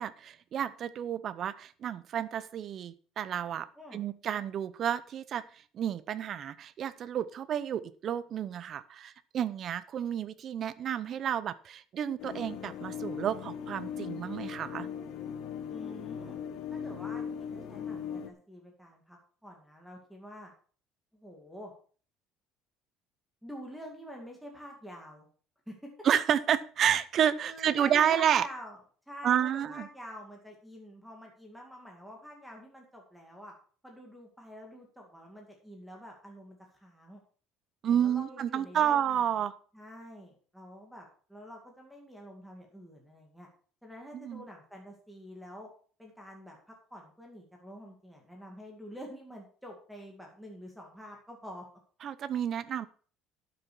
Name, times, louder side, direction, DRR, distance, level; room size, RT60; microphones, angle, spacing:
voice 1, 0.0-3.7 3.9-5.4 5.7-14.9 26.0-28.5 29.2-29.9 37.8-39.5 44.1-44.5 52.0-52.9, right 9 dB, 35° right, 15 dB, 0.7 m, -30 dB
sound 1, 12.2-18.3, left 8 dB, 55° left, 1.2 m, -39 dB
voice 2, 15.7-16.4 16.7-20.5 21.1-21.7 23.4-25.3 25.7-25.9 27.4-28.8 29.1-33.5 33.8-37.2 37.9-39.4 39.7-43.5 43.8-45.7 46.0-51.7, equal, ahead, 0 dB, 2.2 m, -47 dB
11.5 x 6.9 x 6.1 m, 0.42 s
cardioid pair, 165°, 0 cm